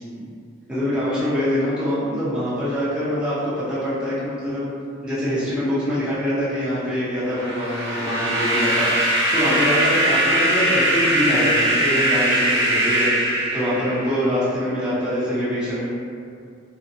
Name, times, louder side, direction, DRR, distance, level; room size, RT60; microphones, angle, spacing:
voice 1, 0.7-4.7 5.0-13.1 13.5-15.9, equal, 5° right, -12 dB, 0.5 m, -24 dB
sound 1, 7.2-14.2, right 1 dB, 65° right, 0.5 m, -21 dB
2.5 x 2.1 x 2.6 m, 2.3 s
head